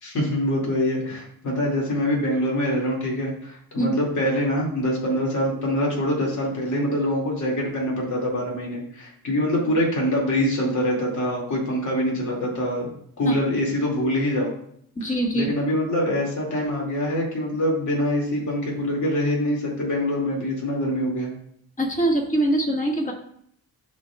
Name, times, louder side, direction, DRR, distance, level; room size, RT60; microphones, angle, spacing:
voice 1, 0.0-12.9 13.2-14.5 15.3-21.3, left 1 dB, 50° left, -2 dB, 2.4 m, -24 dB
voice 2, 14.9-15.5 21.8-23.1, right 1 dB, 20° left, 1 dB, 1.7 m, -23 dB
12.0 x 4.4 x 2.3 m, 0.66 s
cardioid pair, 85°, 37 cm